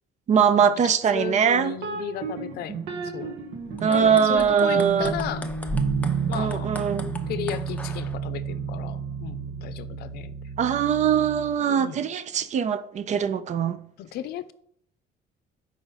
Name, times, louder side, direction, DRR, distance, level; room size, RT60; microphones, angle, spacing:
voice 1, 0.3-1.8 3.8-5.1 6.3-7.1 10.6-13.8, right 7 dB, 45° right, 0.5 m, -22 dB
voice 2, 1.1-3.4 3.9-5.5 6.3-6.7 7.3-10.4 11.7-12.0 14.0-14.5, left 10 dB, 70° left, 0.5 m, -35 dB
sound 1, 1.8-11.6, right 5 dB, 85° right, 1.2 m, -31 dB
sound 2, 3.7-8.2, left 2 dB, 10° left, 0.6 m, -39 dB
4.9 x 4.0 x 5.6 m
cardioid pair, 110°, 17 cm